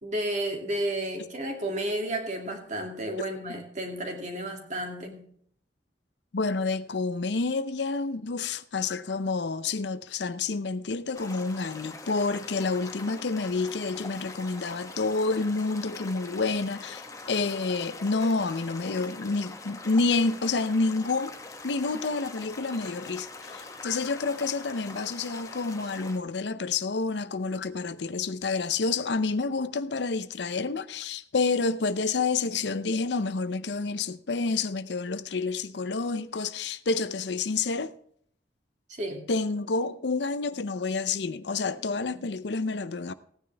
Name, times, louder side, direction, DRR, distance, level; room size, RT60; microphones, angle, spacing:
voice 1, 0.0-5.3 39.0-39.3, right 1 dB, 40° right, 2.3 m, -32 dB
voice 2, 6.3-21.4 21.6-37.9 39.3-43.1, left 3 dB, 75° left, 0.6 m, -29 dB
sound 1, 11.1-26.2, left 3 dB, 20° left, 1.2 m, -43 dB
16.5 x 9.5 x 3.4 m
head